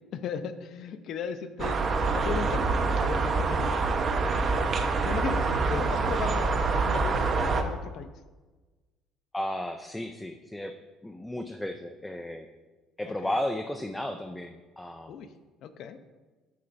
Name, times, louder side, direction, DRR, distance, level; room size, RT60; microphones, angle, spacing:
voice 1, 0.1-1.8 2.1-2.7 3.0-3.7 4.2-4.5 5.0-8.1 13.1-13.4 15.1-15.3 15.6-16.0, left 7 dB, 55° left, 10 dB, 0.6 m, -36 dB
sound 1, 1.6-7.6, right 4 dB, 35° right, 0.7 m, -26 dB
voice 2, 9.3-10.7 11.0-12.5 13.0-15.2, left 1 dB, 5° left, 5 dB, 0.4 m, -34 dB
9.6 x 5.7 x 4.0 m, 1.3 s
cardioid pair, 145°, 0 cm